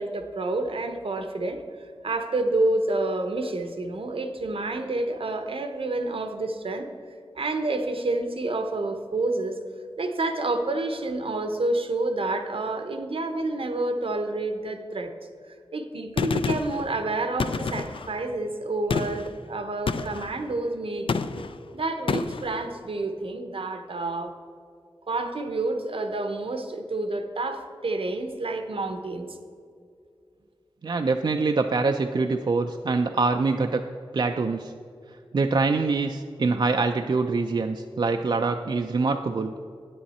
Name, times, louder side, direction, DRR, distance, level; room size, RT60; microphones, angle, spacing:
voice 1, 0.0-1.6 2.0-6.9 7.3-9.6 10.0-15.1 15.7-21.1 21.7-24.3 25.1-29.4, right 2 dB, 75° right, 6 dB, 0.8 m, -29 dB
Gunshot gunfire, 16.2-16.8 17.4-18.1 18.9-19.3 19.9-20.3 21.1-21.6 22.1-22.5, left 5 dB, 65° left, 0.4 m, -28 dB
voice 2, 30.8-33.8 34.1-34.7 35.3-39.5, right 3 dB, 50° right, 5 dB, 0.4 m, -24 dB
9.3 x 8.7 x 4.2 m, 2.3 s
wide cardioid pair, 75°, 10 cm